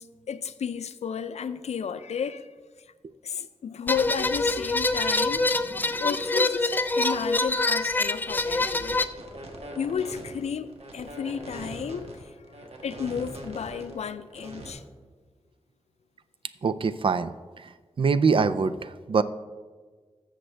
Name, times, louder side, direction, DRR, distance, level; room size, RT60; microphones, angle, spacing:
voice 1, 0.0-2.5 3.2-5.5 6.0-9.0 9.8-12.5 12.8-14.8, left 7 dB, 90° left, 0.4 m, -33 dB
sound 1, 3.9-9.1, left 2 dB, 15° left, 0.4 m, -25 dB
sound 2, 9.0-14.7, right 1 dB, 70° right, 1.4 m, -41 dB
voice 2, 16.6-17.3 18.0-19.2, right 5 dB, 55° right, 0.4 m, -23 dB
14.0 x 6.4 x 3.3 m
wide cardioid pair, 115°, 11 cm